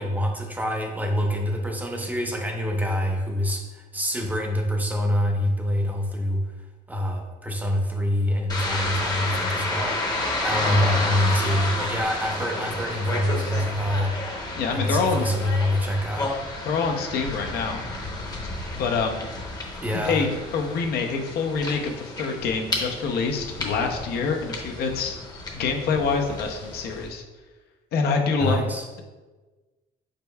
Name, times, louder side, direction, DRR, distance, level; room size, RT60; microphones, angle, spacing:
voice 1, 0.0-6.4 6.9-14.1 14.7-16.3 19.8-20.3 28.4-28.9, equal, 10° right, 1 dB, 0.7 m, -25 dB
sound 1, 8.5-27.1, left 2 dB, 25° left, 0.8 m, -31 dB
voice 2, 14.6-15.2 16.6-17.8 18.7-19.3 19.9-25.2 25.5-27.2 27.9-28.7, left 5 dB, 70° left, 3 dB, 0.6 m, -26 dB
5.1 x 4.3 x 2.3 m, 1.3 s
cardioid pair, 110°, 17 cm